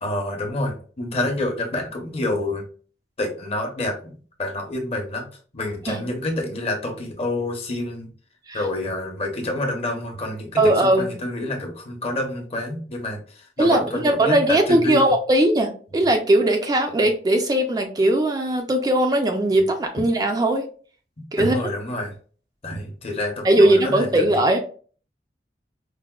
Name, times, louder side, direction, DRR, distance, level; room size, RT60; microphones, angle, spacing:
voice 1, 0.0-2.6 3.2-5.3 5.5-8.1 8.5-15.1 21.2-22.2 22.6-24.4, left 1 dB, 35° left, 3 dB, 0.7 m, -28 dB
voice 2, 10.6-11.1 13.6-20.7 21.3-21.6 23.4-24.6, right 1 dB, 20° right, 4 dB, 0.3 m, -19 dB
4.6 x 2.1 x 2.2 m, 0.42 s
head